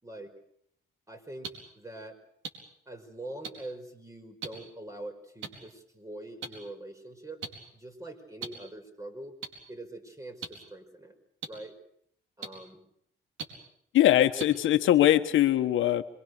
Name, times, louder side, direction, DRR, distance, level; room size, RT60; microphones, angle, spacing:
voice 1, 1.1-1.5 1.8-2.2 2.9-7.4 7.7-9.3 9.7-11.1 11.5-11.8 12.4-12.8 14.2-14.3, right 1 dB, 15° right, 7 dB, 5.3 m, -43 dB
sound 1, 1.4-1.5 2.4-2.5 3.4-3.5 4.4-4.5 5.4-5.5 6.4-6.5 7.4-7.5 8.4-8.5 9.4-9.5 10.4-10.5 11.4-11.5 12.4-12.5 13.4-13.5 14.4-14.5, right 6 dB, 85° right, 4.5 m, -36 dB
voice 2, 13.9-16.0, left 13 dB, 80° left, 9 dB, 1.3 m, -22 dB
26.5 x 23.0 x 6.7 m, 0.69 s
cardioid pair, 90°, 20 cm